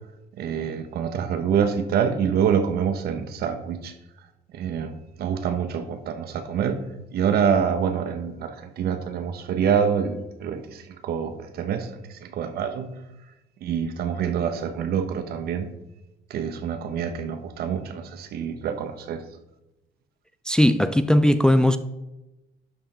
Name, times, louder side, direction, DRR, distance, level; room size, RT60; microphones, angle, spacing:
voice 1, 0.4-3.9 4.5-6.8 7.1-13.0 13.6-15.7 16.3-19.2, right 7 dB, 65° right, 1.1 m, -26 dB
voice 2, 20.5-21.8, left 1 dB, 5° left, 0.4 m, -18 dB
11.5 x 5.7 x 4.3 m
cardioid pair, 110°, 17 cm